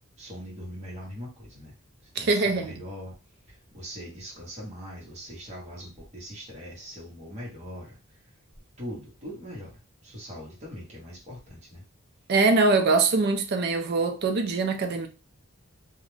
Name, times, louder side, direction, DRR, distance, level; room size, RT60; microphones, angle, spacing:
voice 1, 0.2-1.7 2.2-3.1 3.5-8.0 8.8-11.8, equal, 30° right, 0.9 m, -41 dB
voice 2, 2.2-2.8 12.3-15.1, right 3 dB, 50° right, 0.4 m, -23 dB
2.4 x 2.0 x 3.1 m
head